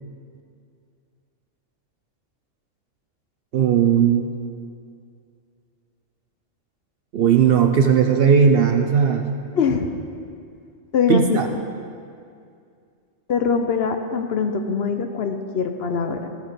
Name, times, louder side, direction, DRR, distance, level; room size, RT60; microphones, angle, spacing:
voice 1, 3.5-4.3 7.1-9.2 11.1-11.5, right 7 dB, 60° right, 5 dB, 0.7 m, -17 dB
voice 2, 9.5-9.9 10.9-11.6 13.3-16.3, left 6 dB, 60° left, 6 dB, 0.8 m, -23 dB
15.5 x 5.7 x 5.1 m, 2.3 s
omnidirectional pair, 1.3 m